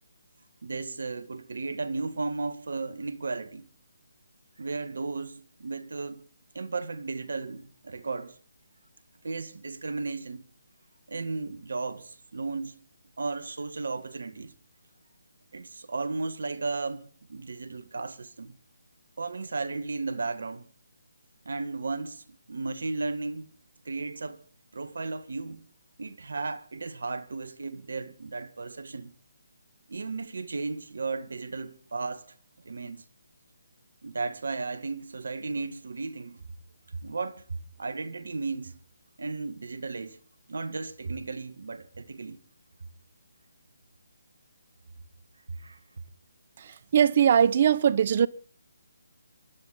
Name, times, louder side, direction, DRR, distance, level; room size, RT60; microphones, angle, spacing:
voice 1, 0.6-3.7 4.6-6.3 6.5-8.4 9.2-10.4 11.1-12.8 13.2-14.5 15.5-18.6 19.2-20.7 21.5-23.5 23.9-24.4 24.7-25.7 26.0-29.1 29.9-32.3 32.6-33.1 34.0-36.4 36.9-38.8 39.2-40.2 40.5-42.4 45.5-45.8, right 3 dB, 70° right, 1.7 m, -35 dB
voice 2, 46.9-48.3, right 8 dB, 40° right, 0.8 m, -20 dB
25.5 x 12.0 x 4.2 m
figure-of-eight pair, 150°, 0 cm